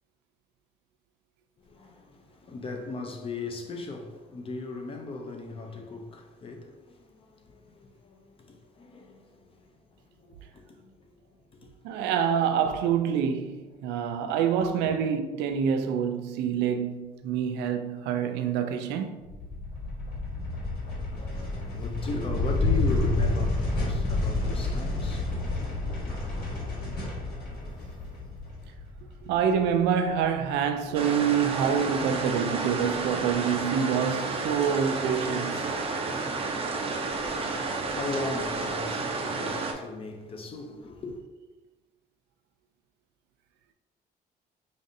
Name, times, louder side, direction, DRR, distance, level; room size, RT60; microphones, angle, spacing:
voice 1, 1.7-9.7 10.2-11.2 11.5-11.7 21.1-25.4 37.2-41.2, left 3 dB, 35° left, 0.6 m, -38 dB
voice 2, 11.8-19.2 29.2-35.7, right 7 dB, 90° right, 0.4 m, -26 dB
sound 1, 19.2-29.8, left 2 dB, 60° left, 1.4 m, -30 dB
sound 2, 30.9-39.7, right 3 dB, 35° right, 0.5 m, -31 dB
5.2 x 2.5 x 2.6 m
cardioid pair, 110°, 17 cm